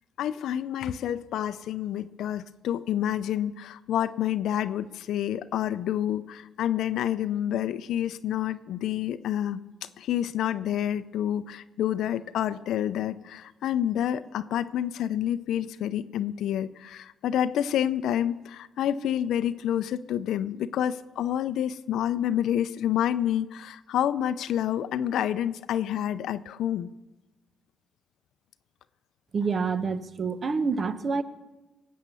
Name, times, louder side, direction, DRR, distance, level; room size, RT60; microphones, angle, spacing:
voice 1, 0.2-26.9, left 10 dB, 80° left, 12 dB, 0.4 m, -28 dB
voice 2, 29.3-31.2, right 5 dB, 40° right, 13 dB, 0.8 m, -27 dB
18.5 x 8.5 x 6.8 m, 1.1 s
cardioid pair, 90°, 0 cm